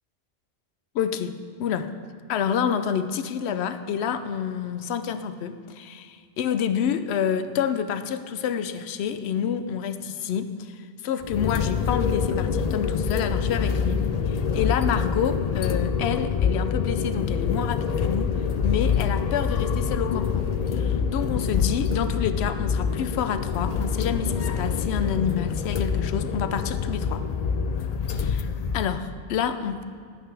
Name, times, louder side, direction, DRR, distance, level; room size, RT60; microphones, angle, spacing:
voice 1, 0.9-1.3 1.6-1.9 2.3-14.0 14.3-18.3 18.6-20.5 20.7-27.2 28.1-28.5 28.7-29.8, left 8 dB, 85° left, 11 dB, 0.8 m, -28 dB
sound 1, 11.2-28.9, left 6 dB, 55° left, 0.4 m, -26 dB
12.0 x 8.7 x 3.4 m, 2.2 s
omnidirectional pair, 1.1 m